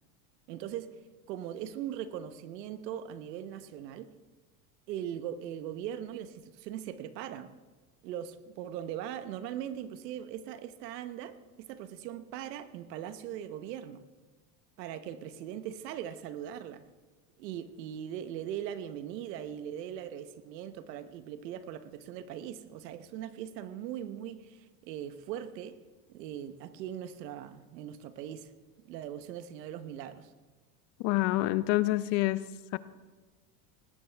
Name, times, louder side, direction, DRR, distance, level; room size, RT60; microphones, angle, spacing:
voice 1, 0.5-1.0 1.3-4.1 4.9-7.6 8.0-14.0 14.8-16.8 17.4-25.8 26.1-28.5 28.8-30.3, right 10 dB, 90° right, 11 dB, 1.2 m, -40 dB
voice 2, 31.0-32.4 32.7-32.8, left 18 dB, 65° left, 15 dB, 0.9 m, -27 dB
19.0 x 17.0 x 3.5 m, 1.3 s
supercardioid pair, 115°, 48 cm